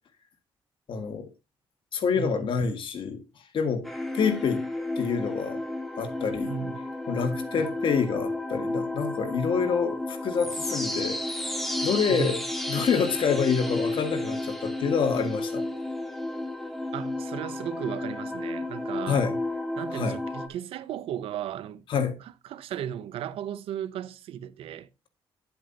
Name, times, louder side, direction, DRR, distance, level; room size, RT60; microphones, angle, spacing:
voice 1, 0.9-1.3 1.9-3.2 3.5-3.9 4.1-4.6 5.0-5.6 6.0-6.6 7.1-11.2 11.8-12.4 12.7-15.6 19.1-19.4 19.9-20.2 21.9-22.1, left 6 dB, 65° left, 1.8 m, -27 dB
voice 2, 2.2-2.5 6.5-6.9 7.6-7.7 12.1-12.4 16.9-19.3 19.8-24.9, right 9 dB, 85° right, 0.7 m, -35 dB
sound 1, 3.8-20.5, left 2 dB, ahead, 2.0 m, -32 dB
10.5 x 7.9 x 2.8 m
cardioid pair, 100°, 9 cm